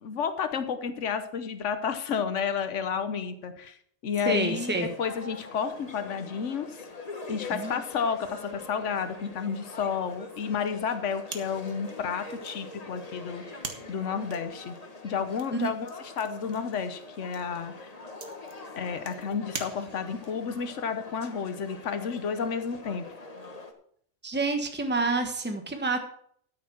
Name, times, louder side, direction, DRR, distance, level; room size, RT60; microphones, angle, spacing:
voice 1, 0.0-3.7 4.0-6.8 7.3-13.4 13.9-14.8 15.0-17.9 18.8-23.0, left 6 dB, 80° left, 10 dB, 1.3 m, -31 dB
voice 2, 4.2-4.9 7.5-7.8 15.5-15.7 24.2-26.0, right 3 dB, 10° right, 5 dB, 1.3 m, -28 dB
sound 1, 4.5-23.7, left 3 dB, 35° left, 1.4 m, -44 dB
sound 2, 11.3-20.3, right 5 dB, 85° right, 1.8 m, -45 dB
13.0 x 6.6 x 6.1 m, 0.63 s
omnidirectional pair, 1.2 m